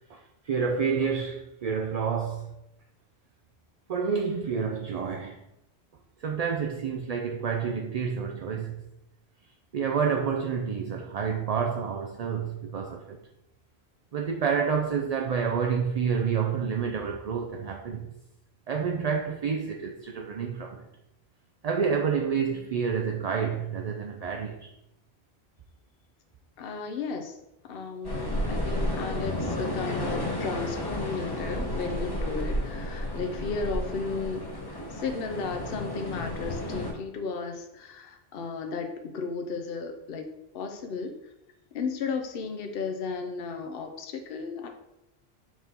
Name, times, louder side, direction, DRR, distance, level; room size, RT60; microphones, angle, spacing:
voice 1, 0.1-2.5 3.9-5.4 6.2-8.8 9.7-13.2 14.1-18.1 18.7-20.9 21.6-24.7, right 6 dB, 50° right, 0.5 m, -29 dB
voice 2, 22.4-22.7 26.6-27.4 27.6-34.4 34.7-40.3 40.5-41.2 41.7-44.7, left 4 dB, 65° left, 0.9 m, -34 dB
sound 1, 28.0-36.9, left 1 dB, 20° left, 1.1 m, -32 dB
6.0 x 3.7 x 4.3 m
omnidirectional pair, 1.1 m